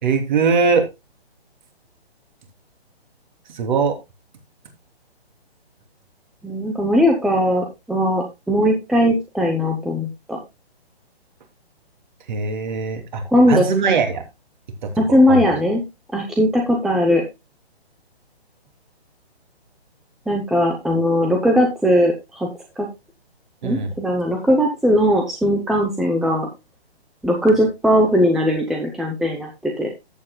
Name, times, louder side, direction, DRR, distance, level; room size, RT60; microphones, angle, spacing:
voice 1, 0.0-0.9 3.5-3.9 12.3-13.2 13.5-14.2 15.3-15.4 23.6-23.9, right 5 dB, 45° right, 6 dB, 3.2 m, -20 dB
voice 2, 6.4-10.4 13.3-14.0 15.0-15.8 16.1-17.2 20.3-22.5 22.8-22.9 23.6-26.5 27.2-29.9, equal, ahead, 1 dB, 0.6 m, -19 dB
14.0 x 8.5 x 2.2 m, 0.24 s
hypercardioid pair, 155°, 32 cm